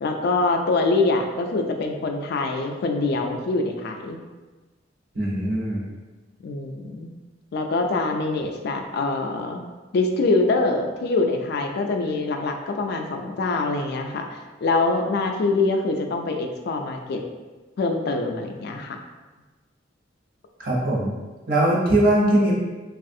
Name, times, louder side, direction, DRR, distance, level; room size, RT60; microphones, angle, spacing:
voice 1, 0.0-4.2 6.4-7.1 7.5-9.6 9.9-17.2 17.8-19.0, left 3 dB, 55° left, 4 dB, 0.3 m, -24 dB
voice 2, 5.1-5.8 20.6-21.1 21.5-22.5, right 1 dB, 50° right, -5 dB, 0.8 m, -20 dB
3.2 x 2.4 x 2.6 m, 1.3 s
head